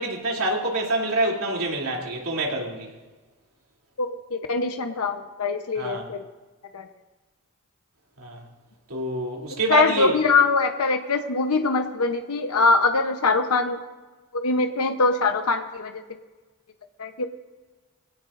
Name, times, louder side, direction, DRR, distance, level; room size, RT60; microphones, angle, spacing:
voice 1, 0.0-2.9 5.7-6.1 8.2-8.4 8.9-10.2, right 2 dB, 75° right, -1 dB, 2.9 m, -26 dB
voice 2, 4.0-6.2 6.7-6.8 9.7-13.8 14.3-15.9 17.0-17.3, left 3 dB, 90° left, 7 dB, 0.8 m, -23 dB
22.0 x 17.5 x 2.6 m, 1.3 s
head